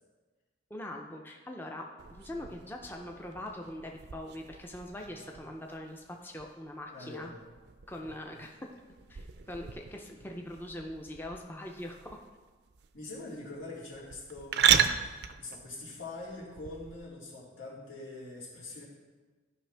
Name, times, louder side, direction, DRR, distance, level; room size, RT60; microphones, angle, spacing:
voice 1, 0.7-7.3 7.9-8.6 9.1-12.1, left 1 dB, 10° left, 1 dB, 0.5 m, -42 dB
sound 1, 2.0-17.0, right 9 dB, 60° right, 0.4 m, -35 dB
voice 2, 6.9-7.4 10.1-10.2 12.9-14.9 15.4-18.8, left 2 dB, 85° left, -5 dB, 2.6 m, -44 dB
13.0 x 5.5 x 3.4 m, 1.4 s
head